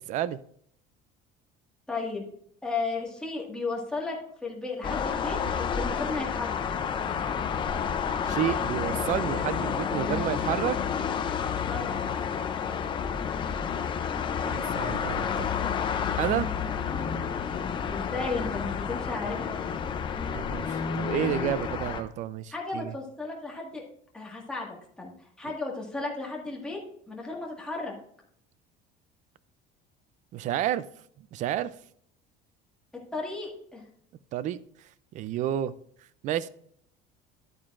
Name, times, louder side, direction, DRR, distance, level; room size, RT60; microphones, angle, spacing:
voice 1, 0.1-0.4 8.2-10.8 14.4-15.5 16.2-16.5 20.3-22.9 25.4-25.5 30.3-30.9 31.2-31.7 34.3-34.6 35.1-35.7 36.2-36.5, right 11 dB, 40° right, 17 dB, 0.4 m, -30 dB
voice 2, 1.9-2.3 2.6-6.6 11.7-12.0 16.9-17.1 17.9-19.5 22.5-23.8 24.1-26.8 27.1-27.9 33.1-33.8, left 3 dB, 5° left, -3 dB, 1.7 m, -34 dB
sound 1, 4.8-22.0, left 7 dB, 25° left, 0.5 m, -30 dB
11.0 x 8.7 x 2.5 m, 0.66 s
cardioid pair, 165°, 19 cm